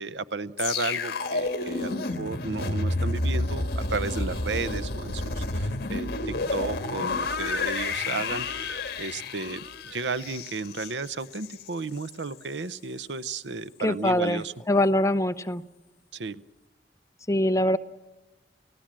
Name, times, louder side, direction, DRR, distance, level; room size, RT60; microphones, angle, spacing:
voice 1, 0.0-14.5 16.1-16.4, right 3 dB, 75° right, 16 dB, 0.8 m, -33 dB
sound 1, 0.6-11.7 12.0-12.2, left 2 dB, 60° left, 1.7 m, -30 dB
voice 2, 13.8-15.6 17.3-17.8, left 1 dB, 20° left, 11 dB, 0.7 m, -23 dB
29.5 x 17.0 x 7.5 m, 1.1 s
head